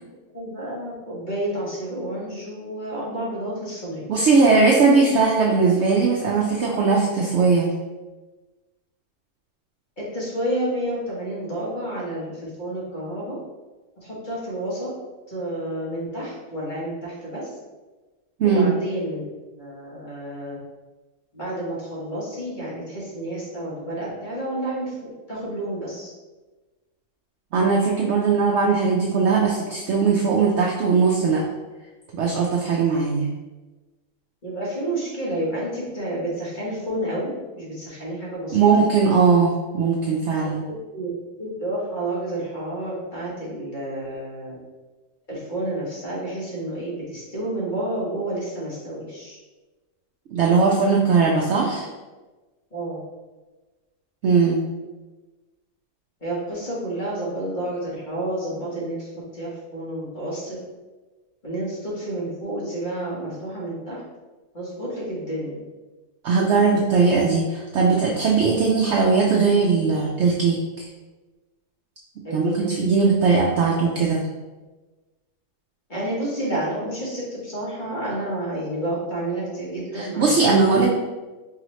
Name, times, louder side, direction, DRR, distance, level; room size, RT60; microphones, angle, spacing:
voice 1, 0.3-4.1 10.0-13.4 14.0-14.9 15.3-17.6 18.4-19.2 19.5-20.6 21.3-26.1 34.4-38.6 40.7-41.1 41.4-44.6 45.3-49.4 52.7-53.0 56.2-60.6 61.4-64.0 64.5-65.6 72.2-72.7 75.9-80.3, right 1 dB, 35° left, -6 dB, 1.1 m, -30 dB
voice 2, 4.1-7.7 18.4-18.7 27.5-31.4 32.1-33.3 38.5-40.6 50.3-51.9 54.2-54.6 66.2-70.9 72.3-74.2 79.9-80.9, right 4 dB, 85° right, -2 dB, 0.6 m, -19 dB
4.5 x 2.9 x 3.0 m, 1.2 s
omnidirectional pair, 1.7 m